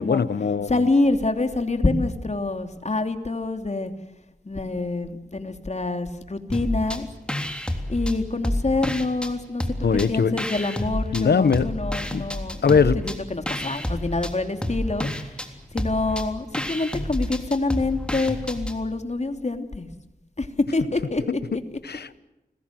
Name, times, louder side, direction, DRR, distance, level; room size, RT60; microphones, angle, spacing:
voice 1, 0.0-0.9 9.8-10.7 11.1-11.7 12.1-12.3 12.6-13.0 21.3-22.2, left 6 dB, 90° left, 16 dB, 1.1 m, -22 dB
voice 2, 0.7-3.9 4.4-7.1 7.9-9.6 10.1-12.8 13.0-15.4 15.7-19.9 20.4-20.5 20.7-21.2 21.5-21.6, left 2 dB, 45° left, 7 dB, 3.0 m, -26 dB
sound 1, 6.5-7.0 7.3-9.3 9.6-11.2 11.5-18.8, left 1 dB, 5° left, 3.4 m, -29 dB
29.5 x 21.0 x 7.7 m, 0.95 s
cardioid pair, 50°, 17 cm